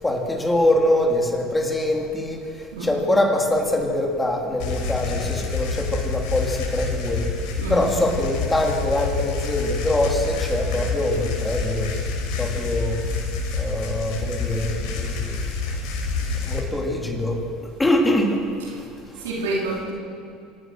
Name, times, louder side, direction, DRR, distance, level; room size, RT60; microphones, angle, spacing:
voice 1, 0.0-2.4 2.8-7.2 7.7-11.9 12.4-13.0 13.6-15.5 16.5-17.4 17.8-18.4, left 1 dB, 15° left, 0 dB, 3.9 m, -23 dB
sound 1, 4.6-16.6, left 4 dB, 70° left, 6.3 m, -27 dB
voice 2, 7.6-7.9 19.2-19.9, right 2 dB, 85° right, -3 dB, 4.2 m, -27 dB
26.5 x 16.5 x 6.3 m, 2.4 s
hypercardioid pair, 80°, 0 cm